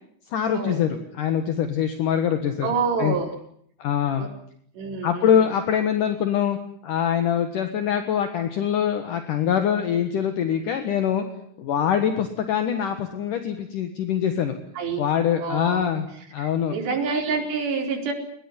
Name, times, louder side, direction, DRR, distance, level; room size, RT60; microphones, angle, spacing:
voice 1, 0.3-2.7 3.0-3.1 3.8-4.3 5.0-11.2 11.6-14.6 15.0-16.1 16.3-16.8, left 8 dB, 60° left, 8 dB, 2.2 m, -24 dB
voice 2, 2.6-3.3 4.2-4.3 4.7-5.4 14.8-15.0 15.4-15.9 16.4-18.1, right 5 dB, 60° right, 2 dB, 6.4 m, -27 dB
22.5 x 20.5 x 9.8 m, 0.66 s
omnidirectional pair, 5.8 m